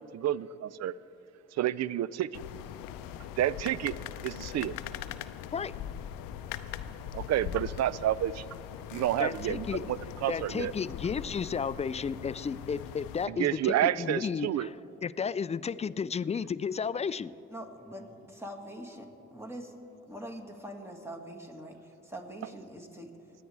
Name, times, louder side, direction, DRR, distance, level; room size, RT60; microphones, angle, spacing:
voice 1, 0.1-0.9 1.6-2.4 3.4-3.9 4.2-4.7 7.1-8.4 8.9-10.7 13.3-14.7, right 12 dB, 50° right, 20 dB, 0.4 m, -29 dB
sound 1, 2.3-13.3, left 10 dB, 75° left, 0.6 m, -41 dB
voice 2, 9.2-9.8 10.3-14.7 15.0-17.4, left 6 dB, 20° left, 17 dB, 0.4 m, -33 dB
voice 3, 17.5-19.7 20.1-23.1, right 1 dB, 10° right, 2 dB, 1.9 m, -43 dB
26.5 x 9.3 x 3.3 m, 2.9 s
hypercardioid pair, 45°, 34 cm